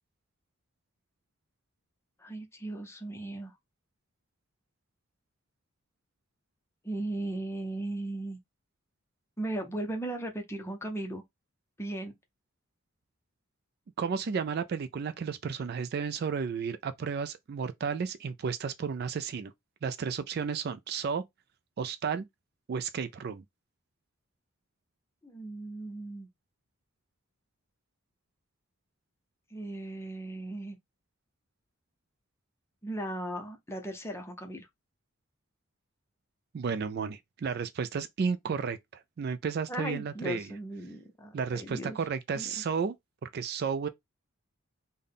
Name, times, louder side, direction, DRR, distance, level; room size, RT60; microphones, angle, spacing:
voice 1, 2.2-3.5 6.8-8.4 9.4-11.2 11.8-12.1 25.2-26.3 29.5-30.8 32.8-34.7 39.7-42.0 42.3-42.5, right 1 dB, 10° left, 0.6 m, -37 dB
voice 2, 14.0-19.5 19.8-21.2 21.8-22.3 22.7-23.4 36.5-40.5 41.3-43.0 43.2-43.9, right 6 dB, 45° right, 0.3 m, -33 dB
3.5 x 2.2 x 3.7 m
head